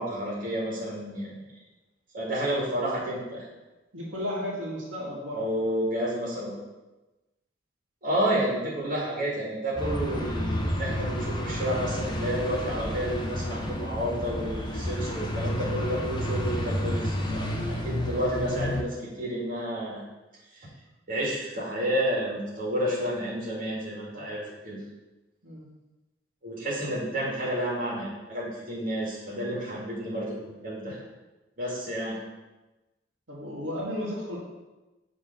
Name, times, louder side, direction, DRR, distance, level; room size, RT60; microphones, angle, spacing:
voice 1, 0.0-1.4 2.1-3.4 5.3-6.5 8.0-20.0 20.5-20.7 21.1-24.8 26.4-31.0 31.6-32.2, equal, 45° right, -6 dB, 2.0 m, -30 dB
voice 2, 3.9-5.4 24.1-24.2 25.4-25.7 33.3-34.4, left 1 dB, 75° right, -6 dB, 1.8 m, -34 dB
sound 1, 9.8-18.8, left 1 dB, 20° left, 0.5 m, -31 dB
6.5 x 3.5 x 5.2 m, 1.1 s
head